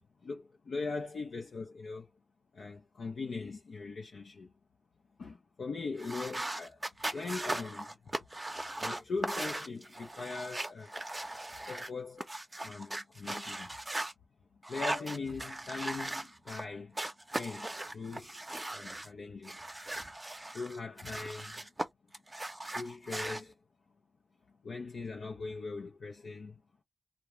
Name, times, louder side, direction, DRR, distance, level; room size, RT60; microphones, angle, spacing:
voice 1, 0.2-2.1 2.5-4.5 5.2-6.8 7.1-7.9 8.8-11.0 11.7-12.3 12.6-13.7 14.7-17.0 17.4-18.3 18.7-19.6 20.5-21.6 22.6-23.5 24.6-26.6, left 4 dB, 85° left, 0.4 m, -40 dB
sound 1, 6.0-14.1 14.6-16.6 16.9-19.1 19.4-21.9 22.1-23.4, right 1 dB, 30° right, 0.6 m, -39 dB
2.3 x 2.1 x 2.9 m
cardioid pair, 50°, 0 cm